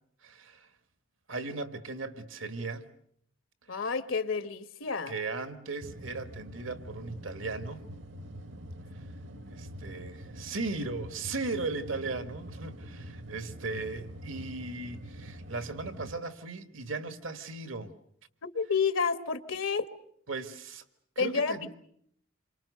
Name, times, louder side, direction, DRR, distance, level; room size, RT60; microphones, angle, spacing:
voice 1, 0.2-0.7 1.3-2.9 3.7-3.9 5.1-7.8 9.5-17.9 20.3-20.8 21.2-21.7, right 3 dB, 85° right, 1.8 m, -37 dB
voice 2, 3.7-5.1 18.4-19.9 21.2-21.7, left 5 dB, 85° left, 1.2 m, -30 dB
sound 1, 5.8-16.2, equal, 65° right, 1.1 m, -45 dB
28.0 x 24.5 x 6.6 m
head